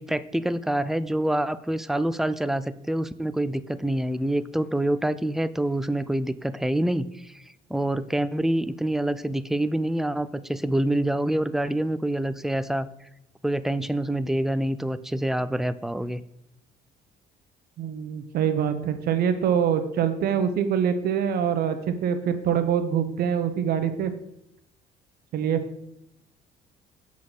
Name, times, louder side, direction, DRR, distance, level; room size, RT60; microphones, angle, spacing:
voice 1, 0.0-7.4 7.7-12.9 13.4-16.2, right 1 dB, ahead, 14 dB, 0.3 m, -26 dB
voice 2, 17.8-24.1 25.3-25.6, right 8 dB, 65° right, 9 dB, 0.9 m, -24 dB
7.3 x 4.1 x 6.2 m, 0.80 s
cardioid pair, 110°, 17 cm